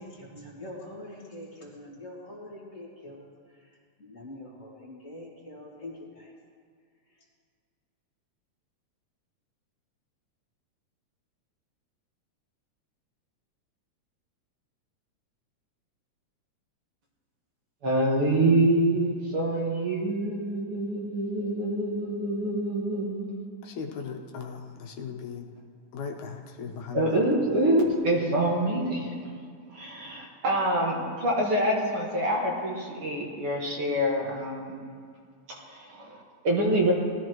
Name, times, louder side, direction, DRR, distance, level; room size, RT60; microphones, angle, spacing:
voice 1, 0.0-3.3 4.0-6.3, left 1 dB, 30° left, -4 dB, 2.2 m, -44 dB
voice 2, 17.8-23.4 26.9-29.1 29.7-34.9 35.6-36.9, right 1 dB, 55° right, -3 dB, 2.4 m, -26 dB
voice 3, 23.6-25.5 25.9-27.2, left 6 dB, 80° left, 1 dB, 2.4 m, -38 dB
19.0 x 13.0 x 3.1 m, 2.1 s
omnidirectional pair, 3.3 m